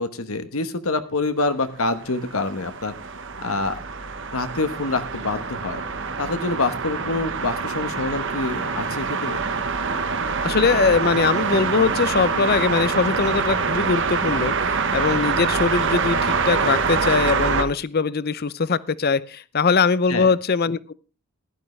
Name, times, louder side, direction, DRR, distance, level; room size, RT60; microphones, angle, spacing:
voice 1, 0.0-2.9 3.4-3.8 4.3-5.8 6.2-9.4 20.1-20.3, left 3 dB, 70° left, 10 dB, 1.3 m, -26 dB
sound 1, 1.9-17.7, right 5 dB, 55° right, 1.2 m, -25 dB
voice 2, 10.4-20.9, left 4 dB, 45° left, 18 dB, 0.6 m, -21 dB
15.5 x 12.0 x 3.3 m, 0.33 s
head